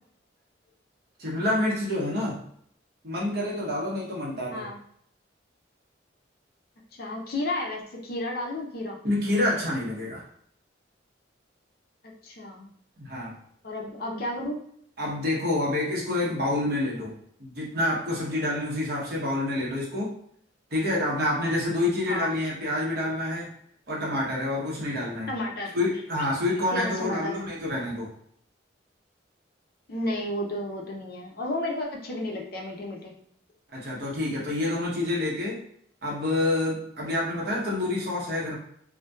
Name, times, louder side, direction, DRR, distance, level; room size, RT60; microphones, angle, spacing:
voice 1, 1.2-2.4 3.0-4.7 9.0-10.2 13.0-13.3 15.0-17.1 17.4-20.1 20.7-23.5 23.9-25.3 25.7-28.1 33.7-35.6 36.0-38.5, left 1 dB, 55° right, -4 dB, 0.8 m, -27 dB
voice 2, 6.9-9.0 12.0-12.7 13.6-14.6 22.1-22.3 25.3-25.8 26.7-27.5 29.9-33.1, left 1 dB, 50° left, 0 dB, 0.4 m, -32 dB
2.6 x 2.1 x 2.2 m, 0.67 s
head